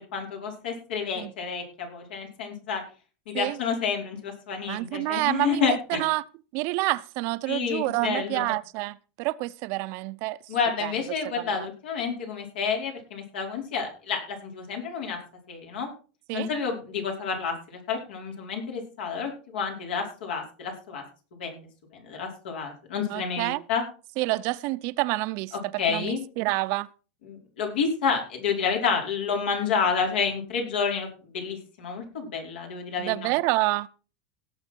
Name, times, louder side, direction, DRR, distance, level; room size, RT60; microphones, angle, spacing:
voice 1, 0.0-2.8 3.3-6.0 7.5-8.5 10.5-15.2 15.5-15.9 16.3-21.0 21.4-23.8 25.8-26.2 27.2-31.1 31.3-33.3, left 6 dB, 85° left, 5.1 m, -29 dB
voice 2, 4.7-6.2 6.5-10.4 10.8-10.9 11.4-11.5 16.3-16.5 23.1-23.6 24.2-26.9 33.0-33.9, right 21 dB, 50° right, 0.6 m, -28 dB
17.5 x 7.8 x 4.5 m
supercardioid pair, 145°, 5 cm